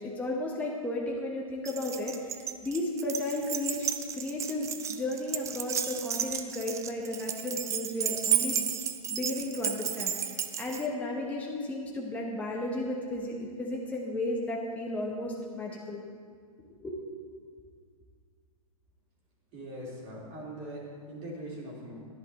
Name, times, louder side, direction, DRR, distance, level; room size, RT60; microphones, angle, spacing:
voice 1, 0.0-8.7 9.1-16.0 16.8-17.0, left 1 dB, 10° left, -3 dB, 1.1 m, -34 dB
Keys jangling, 1.6-10.9, right 8 dB, 15° right, 0.5 m, -33 dB
voice 2, 19.5-21.9, right 1 dB, 35° right, -6 dB, 3.4 m, -41 dB
11.0 x 10.5 x 4.2 m, 2.1 s
figure-of-eight pair, 110°, 19 cm